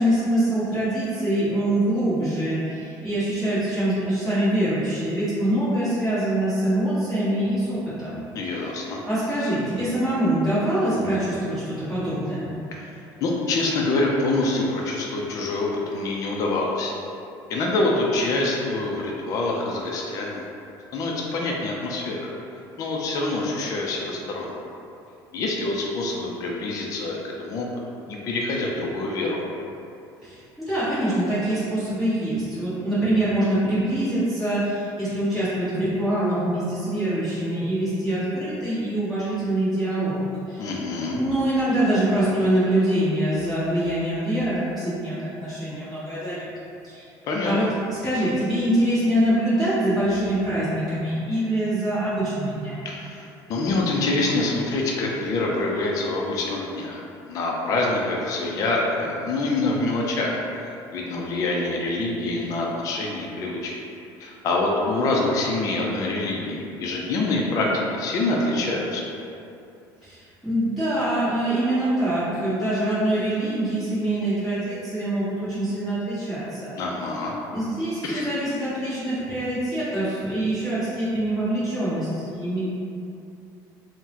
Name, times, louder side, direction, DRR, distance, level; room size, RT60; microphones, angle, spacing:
voice 1, 0.0-8.2 8.4-8.7 9.1-12.5 30.2-40.7 41.1-46.5 46.8-47.1 47.4-52.9 70.0-76.7 77.5-82.6, right 1 dB, ahead, -17 dB, 1.2 m, -24 dB
voice 2, 8.4-9.0 13.2-16.9 17.5-20.5 20.9-22.3 22.8-24.5 25.3-27.7 28.1-29.4 40.6-41.2 47.3-47.5 52.8-57.0 57.3-60.4 60.9-63.7 64.2-69.1 76.8-77.3 78.0-78.3, left 2 dB, 45° left, -2 dB, 0.4 m, -25 dB
3.7 x 2.1 x 2.8 m, 2.7 s
cardioid pair, 145°, 8 cm